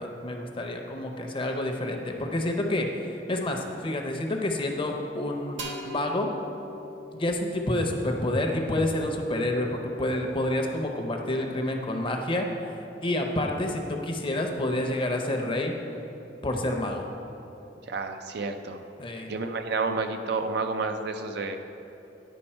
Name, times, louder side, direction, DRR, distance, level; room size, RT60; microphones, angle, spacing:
voice 1, 0.0-6.3 7.1-15.7 16.4-17.1 19.0-19.3, left 1 dB, 30° left, 3 dB, 0.7 m, -29 dB
sound 1, 5.6-9.2, equal, 85° right, 0.8 m, -42 dB
voice 2, 17.9-18.8 19.3-21.6, right 4 dB, 65° right, 6 dB, 0.5 m, -30 dB
10.0 x 5.2 x 4.3 m, 2.9 s
head